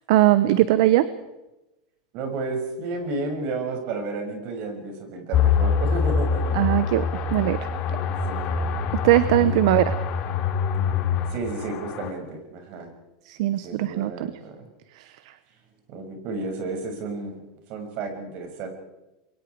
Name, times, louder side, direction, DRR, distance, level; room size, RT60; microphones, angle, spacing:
voice 1, 0.1-1.1 6.5-7.1 7.3-7.6 8.9-9.9 13.3-14.3 15.0-15.1, right 15 dB, 65° right, 14 dB, 1.0 m, -20 dB
voice 2, 2.1-6.7 7.9-8.5 9.3-9.6 11.3-12.9 13.6-14.7 15.9-17.4 17.7-18.7, right 3 dB, 50° right, 4 dB, 6.4 m, -32 dB
sound 1, 5.3-12.1, left 6 dB, 40° left, 3.0 m, -25 dB
27.0 x 23.0 x 4.8 m, 0.98 s
supercardioid pair, 135°, 3 cm